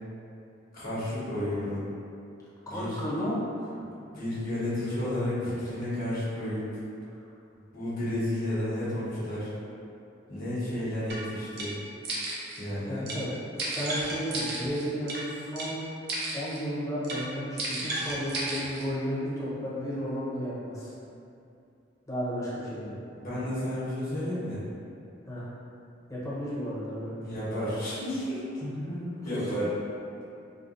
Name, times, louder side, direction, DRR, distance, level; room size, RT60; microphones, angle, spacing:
voice 1, 0.7-1.8 2.7-3.0 3.8-6.6 7.7-9.5 10.3-11.8 12.6-13.1 23.1-24.6 27.2-28.4 29.2-29.7, left 1 dB, 50° left, -10 dB, 1.1 m, -32 dB
voice 2, 2.7-3.8 12.8-13.4 13.7-15.8 16.3-20.9 22.1-23.0 25.3-25.5 26.1-27.3 28.6-29.3, equal, 20° left, -9 dB, 0.8 m, -33 dB
sound 1, 11.1-11.2 11.6-11.7 12.0-12.6 13.1-13.2 13.6-15.2 15.6-15.7 16.1-16.6 17.0-17.2 17.6-18.9, right 2 dB, 60° right, 0.6 m, -33 dB
3.6 x 2.3 x 2.5 m, 2.6 s
head